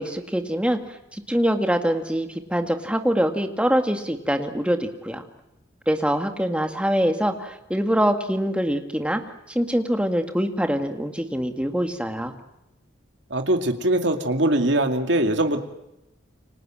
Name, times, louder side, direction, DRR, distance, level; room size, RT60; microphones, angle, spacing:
voice 1, 0.0-5.2 5.9-9.2 9.5-12.3, equal, 5° right, 5 dB, 2.0 m, -24 dB
voice 2, 13.3-15.6, right 1 dB, 65° right, 5 dB, 2.5 m, -22 dB
29.5 x 25.0 x 7.6 m, 0.90 s
head